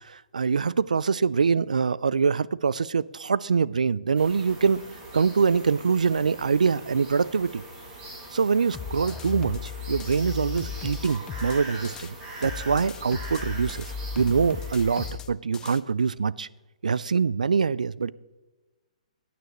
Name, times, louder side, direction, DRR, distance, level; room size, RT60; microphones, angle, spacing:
voice 1, 0.0-4.8 5.1-7.6 8.3-12.1 12.4-16.5 16.8-18.1, right 5 dB, 80° right, 20 dB, 0.3 m, -24 dB
sound 1, 4.1-15.1, right 1 dB, 30° right, 4.3 m, -42 dB
sound 2, 8.7-12.1 12.4-15.8, left 7 dB, 15° left, 0.5 m, -36 dB
15.5 x 9.4 x 3.1 m, 1.2 s
figure-of-eight pair, 125°, 4 cm